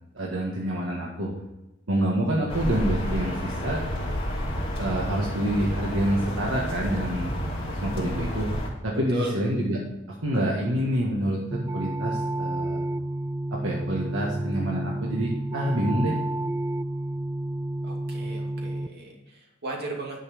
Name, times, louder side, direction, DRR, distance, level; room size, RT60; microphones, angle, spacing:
voice 1, 0.1-1.3 1.9-3.8 4.8-7.3 7.7-8.5 8.8-9.8 10.1-12.8 13.5-16.2, right 1 dB, 75° right, -2 dB, 1.7 m, -27 dB
sound 1, 2.5-8.7, equal, 30° left, 2.9 m, -30 dB
sound 2, 11.5-18.9, right 1 dB, 15° right, 0.3 m, -30 dB
voice 2, 17.8-20.2, right 1 dB, 55° right, -1 dB, 2.6 m, -35 dB
11.0 x 5.6 x 7.1 m, 0.96 s
head